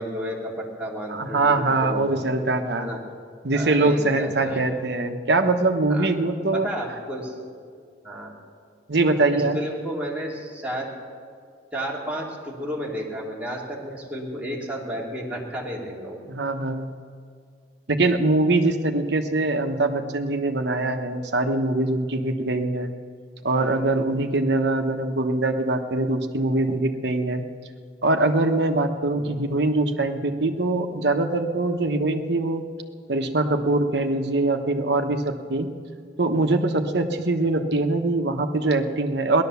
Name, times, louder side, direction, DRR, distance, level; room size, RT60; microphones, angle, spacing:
voice 1, 0.0-2.3 2.8-3.0 3.5-4.7 5.9-6.1 6.5-7.3 8.0-8.3 9.3-10.9 11.7-16.2 29.1-29.3, equal, 10° right, -4 dB, 2.6 m, -32 dB
voice 2, 1.1-2.9 3.4-6.7 8.9-9.6 16.3-16.9 17.9-22.9 23.4-27.4 28.0-32.6 33.1-35.7 36.2-39.4, right 2 dB, 65° right, 6 dB, 1.1 m, -23 dB
17.0 x 11.5 x 7.0 m, 2.1 s
head